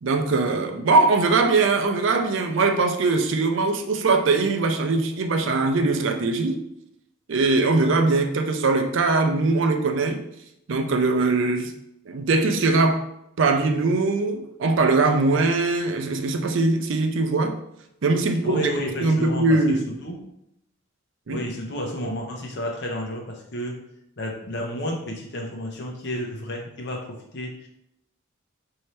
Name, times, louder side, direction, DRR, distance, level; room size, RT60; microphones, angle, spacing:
voice 1, 0.0-6.6 7.3-10.2 10.7-11.7 12.1-13.0 13.4-17.6 18.0-18.6 19.0-19.8 21.3-21.4, right 3 dB, 60° right, 5 dB, 0.4 m, -21 dB
voice 2, 18.4-20.2 21.3-23.8 24.2-27.7, equal, 55° left, 0 dB, 0.8 m, -31 dB
4.3 x 2.7 x 3.2 m, 0.78 s
head